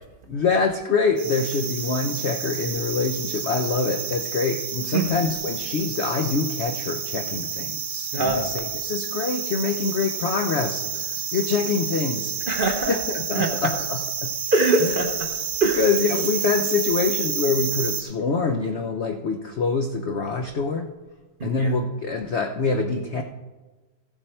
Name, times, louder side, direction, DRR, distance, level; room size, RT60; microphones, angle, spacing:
voice 1, 0.3-11.1 11.3-12.4 12.9-14.3 14.8-14.9 15.8-20.9 21.4-23.2, left 4 dB, 70° left, 5 dB, 0.6 m, -25 dB
sound 1, 1.2-18.0, right 7 dB, 70° right, 1.7 m, -30 dB
voice 2, 8.1-8.5 12.5-13.0 13.3-13.5 14.5-15.3 15.6-15.8 21.4-21.7, right 2 dB, 40° right, 2 dB, 0.9 m, -23 dB
15.0 x 7.3 x 4.3 m, 1.2 s
omnidirectional pair, 2.0 m